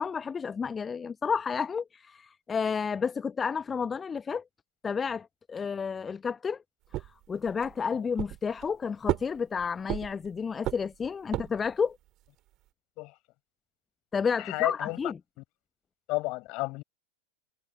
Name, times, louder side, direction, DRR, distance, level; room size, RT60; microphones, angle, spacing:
voice 1, 0.0-4.4 4.8-6.6 7.0-12.0 14.1-15.2, left 6 dB, 15° left, 0.9 m, -31 dB
sound 1, 6.9-7.8 8.2-8.8 9.1-10.3 10.6-11.7, right 16 dB, 35° right, 3.6 m, -33 dB
voice 2, 14.4-15.0 16.1-16.8, left 24 dB, 40° left, 7.2 m, -31 dB
figure-of-eight pair, 90°, 0 cm